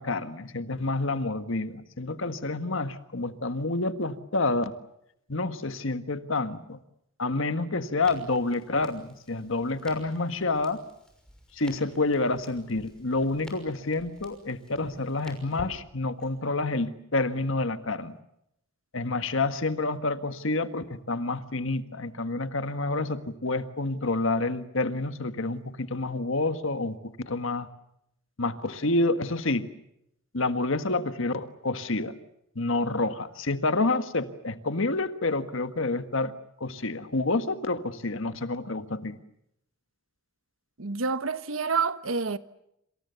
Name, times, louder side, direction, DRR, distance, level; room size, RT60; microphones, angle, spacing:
voice 1, 0.0-4.7 5.3-6.8 7.2-10.8 11.5-18.2 18.9-27.7 28.4-29.7 30.3-32.2 32.5-36.3 36.6-39.2, left 2 dB, 65° left, 1.7 m, -28 dB
Crackle, 8.0-16.3, equal, 5° left, 6.1 m, -50 dB
voice 2, 40.8-42.4, right 4 dB, 75° right, 1.2 m, -28 dB
27.5 x 27.0 x 7.0 m
head